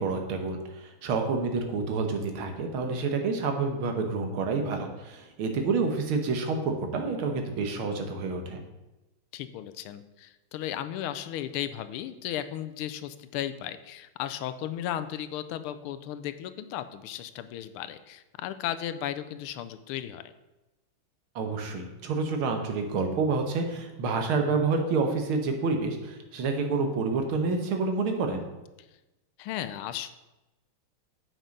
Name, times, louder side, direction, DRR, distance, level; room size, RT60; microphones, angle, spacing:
voice 1, 0.0-8.6 21.4-28.6, right 4 dB, 80° right, 5 dB, 1.9 m, -28 dB
voice 2, 9.3-20.3 29.4-30.1, left 11 dB, 90° left, 12 dB, 1.5 m, -35 dB
7.8 x 6.1 x 5.2 m, 1.0 s
omnidirectional pair, 2.3 m